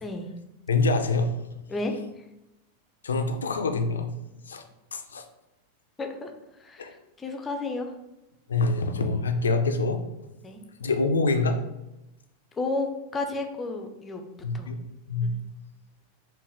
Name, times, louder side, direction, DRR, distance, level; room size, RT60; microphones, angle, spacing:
voice 1, 0.7-1.3 3.0-4.1 4.5-4.6 4.9-5.2 6.8-6.9 8.5-10.0 10.8-11.6 14.4-14.8 15.1-15.3, left 3 dB, 70° left, 7 dB, 0.4 m, -25 dB
voice 2, 6.0-6.3 6.6-7.9 10.4-10.6 12.5-14.2 14.5-14.7 15.2-15.3, left 2 dB, 15° left, 5 dB, 0.5 m, -32 dB
4.4 x 2.6 x 3.4 m, 0.92 s
figure-of-eight pair, 90°, 0 cm